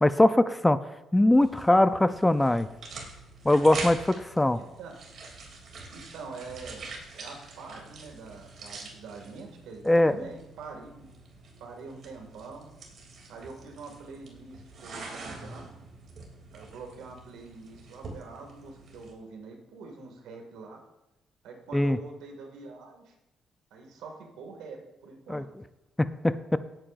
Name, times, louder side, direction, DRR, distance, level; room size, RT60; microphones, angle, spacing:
voice 1, 0.0-0.8 1.1-2.7 3.4-4.6 9.9-10.2 21.7-22.0 25.3-25.4 26.0-26.6, left 1 dB, 10° left, 12 dB, 0.5 m, -21 dB
sound 1, 1.3-19.1, right 3 dB, 60° right, 2.9 m, -45 dB
voice 2, 4.5-4.9 5.9-10.9 11.6-12.7 13.3-15.7 16.5-20.8 21.4-23.1 23.7-25.5, right 4 dB, 90° right, 2 dB, 2.2 m, -45 dB
17.5 x 8.9 x 2.6 m, 0.96 s
cardioid pair, 90°, 0 cm